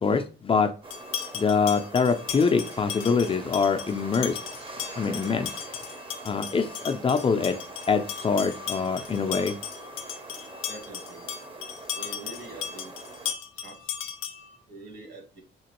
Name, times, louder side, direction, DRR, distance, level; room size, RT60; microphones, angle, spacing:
voice 1, 0.0-0.7 1.3-4.4 5.0-5.5 6.2-7.6 7.9-9.6, left 5 dB, 30° left, 7 dB, 0.4 m, -24 dB
sound 1, 0.8-13.3, right 2 dB, 25° right, 0.7 m, -43 dB
sound 2, 0.9-14.6, left 8 dB, 90° left, 0.4 m, -37 dB
voice 2, 10.7-11.3 12.0-13.1 13.5-13.9 14.7-15.4, right 2 dB, 55° right, 2 dB, 1.4 m, -44 dB
3.0 x 2.8 x 2.9 m, 0.37 s
cardioid pair, 90°, 20 cm